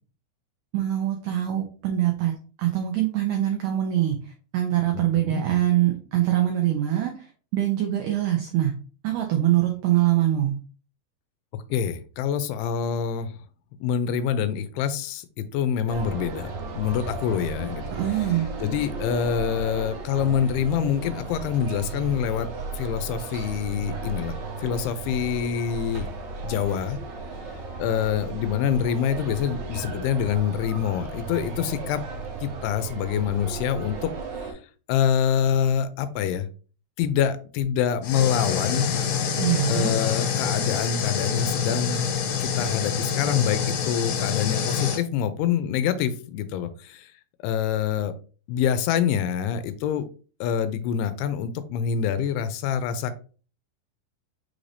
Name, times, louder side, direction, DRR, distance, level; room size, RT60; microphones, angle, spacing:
voice 1, 0.7-2.3 2.6-4.2 4.5-7.1 7.5-8.7 9.0-10.5 17.9-18.5 39.4-39.9, right 13 dB, 85° right, 2 dB, 1.8 m, -23 dB
voice 2, 11.5-13.3 13.8-22.5 22.8-24.3 24.6-26.1 26.4-27.0 27.8-32.0 32.4-34.1 34.4-34.5 34.9-36.5 37.0-39.0 39.7-42.1 42.4-47.1 47.4-48.1 48.5-50.1 50.4-53.1, left 8 dB, 85° left, 11 dB, 2.6 m, -26 dB
sound 1, 15.9-34.5, right 4 dB, 65° right, 1.8 m, -35 dB
sound 2, 38.0-45.0, left 7 dB, 70° left, 2.8 m, -26 dB
6.2 x 2.6 x 3.3 m, 0.38 s
omnidirectional pair, 4.6 m